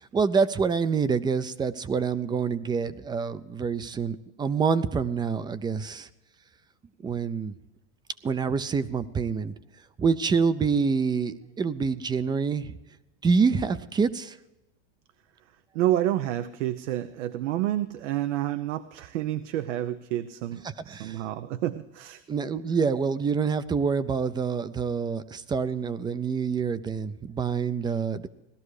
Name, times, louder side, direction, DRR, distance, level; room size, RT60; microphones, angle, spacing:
voice 1, 0.1-6.1 7.0-7.5 8.2-9.5 10.0-12.7 13.2-14.4 20.6-21.2 22.3-28.3, right 5 dB, 10° right, 15 dB, 0.4 m, -26 dB
voice 2, 15.7-22.2, right 13 dB, 85° right, 13 dB, 0.8 m, -29 dB
17.5 x 12.5 x 4.8 m, 0.97 s
supercardioid pair, 140°, 36 cm